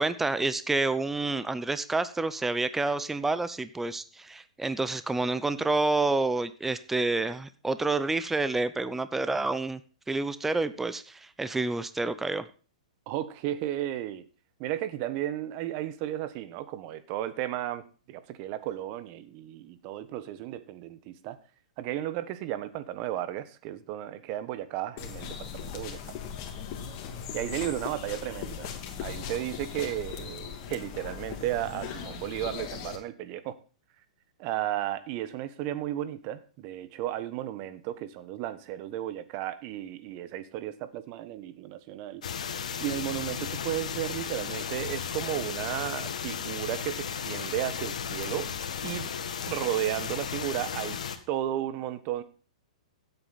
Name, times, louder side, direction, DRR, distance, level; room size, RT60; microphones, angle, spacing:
voice 1, 0.0-9.8 10.1-12.5, right 3 dB, 5° right, 13 dB, 0.7 m, -28 dB
voice 2, 13.1-14.2 14.6-21.4 21.8-26.1 27.3-28.7 29.0-33.6 34.4-42.2 42.8-48.5 48.8-49.1 49.5-51.0 51.3-52.2, right 13 dB, 40° right, 13 dB, 1.2 m, -34 dB
sound 1, 25.0-33.0, left 7 dB, 40° left, 2.5 m, -39 dB
sound 2, 42.2-51.2, left 7 dB, 75° left, 1.7 m, -35 dB
15.5 x 8.2 x 4.1 m, 0.37 s
hypercardioid pair, 130°, 4 cm